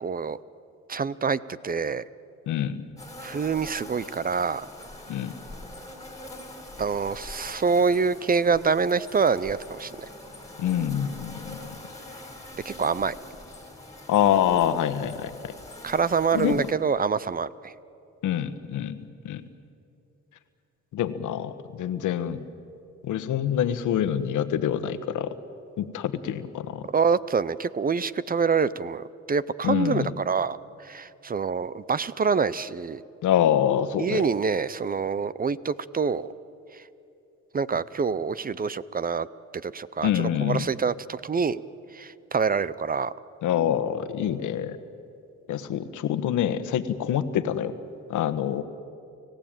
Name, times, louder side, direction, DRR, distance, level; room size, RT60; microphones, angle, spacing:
voice 1, 0.0-0.4 0.9-2.0 3.2-4.7 6.8-10.0 12.6-13.1 15.8-17.7 26.9-33.0 34.0-36.3 37.5-39.3 39.5-41.6 41.9-43.1, right 5 dB, 30° right, 18 dB, 0.6 m, -26 dB
voice 2, 2.5-2.8 5.1-5.3 10.6-11.8 14.1-15.5 16.3-16.6 18.2-19.0 19.2-19.4 20.9-22.4 23.0-25.3 25.8-26.9 29.6-30.1 33.2-34.2 40.0-40.7 43.4-44.8 45.5-47.7 48.1-48.6, left 10 dB, 80° left, 11 dB, 1.3 m, -26 dB
sound 1, 3.0-16.7, left 1 dB, 10° left, 4.2 m, -44 dB
30.0 x 16.0 x 9.0 m, 2.7 s
cardioid pair, 90°, 30 cm